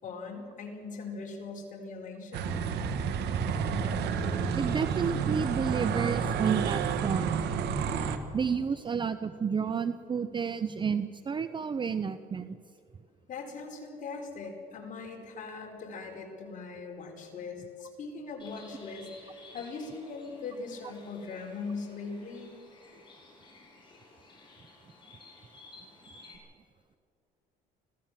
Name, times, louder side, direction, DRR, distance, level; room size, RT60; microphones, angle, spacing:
voice 1, 0.0-2.6 13.3-22.5, left 4 dB, 50° left, 1 dB, 4.7 m, -40 dB
sound 1, 2.3-8.2, right 6 dB, 80° right, 1.8 m, -30 dB
voice 2, 4.5-7.4 8.3-12.6, right 6 dB, 30° right, 12 dB, 0.6 m, -31 dB
Bird, 18.4-26.4, left 3 dB, 30° left, 7.4 m, -54 dB
25.5 x 16.5 x 7.5 m, 2.4 s
cardioid pair, 110°, 17 cm